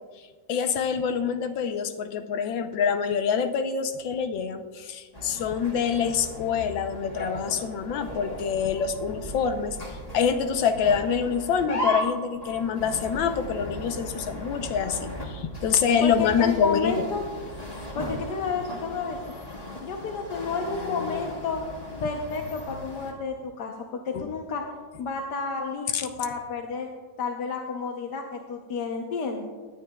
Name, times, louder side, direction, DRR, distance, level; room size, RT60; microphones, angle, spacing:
voice 1, 0.5-9.8 10.1-17.0 24.1-24.3 25.9-26.0, left 7 dB, 80° left, 8 dB, 1.5 m, -26 dB
sound 1, 5.1-23.1, left 1 dB, 20° left, 1.5 m, -37 dB
voice 2, 16.0-17.2 18.0-19.4 19.8-21.6 22.0-24.6 25.0-26.9 27.2-29.5, left 5 dB, 65° left, 2 dB, 1.4 m, -31 dB
19.0 x 10.5 x 2.3 m, 1.5 s
omnidirectional pair, 2.0 m